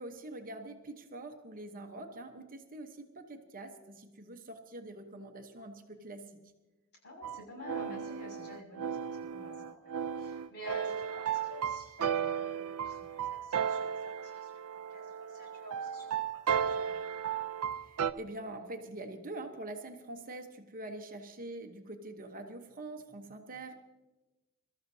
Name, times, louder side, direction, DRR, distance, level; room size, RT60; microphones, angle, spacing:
voice 1, 0.0-6.5 17.7-23.8, right 2 dB, 40° right, 5 dB, 1.1 m, -45 dB
voice 2, 7.0-14.6 14.9-16.1 16.5-17.1, left 1 dB, 50° left, -2 dB, 6.4 m, -49 dB
sound 1, 7.2-18.1, right 8 dB, 90° right, 0.5 m, -35 dB
24.5 x 13.5 x 2.8 m, 1.1 s
head